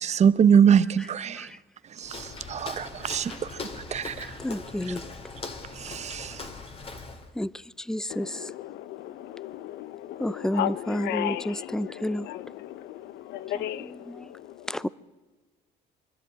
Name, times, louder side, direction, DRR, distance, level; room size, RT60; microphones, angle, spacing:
voice 1, 0.0-1.5 2.0-3.5 3.9-4.3 4.9-5.0 5.8-6.4, right 7 dB, 40° right, 0.8 m, -23 dB
Walk footsteps, 2.0-7.3, left 3 dB, 35° left, 2.5 m, -40 dB
voice 2, 4.4-5.0 7.4-7.5 7.9-8.3 10.2-12.3 13.8-14.3 14.7-14.9, left 1 dB, 5° left, 0.5 m, -30 dB
voice 3, 8.1-14.0, left 13 dB, 80° left, 0.9 m, -35 dB
24.0 x 12.5 x 8.9 m
cardioid pair, 110°, 17 cm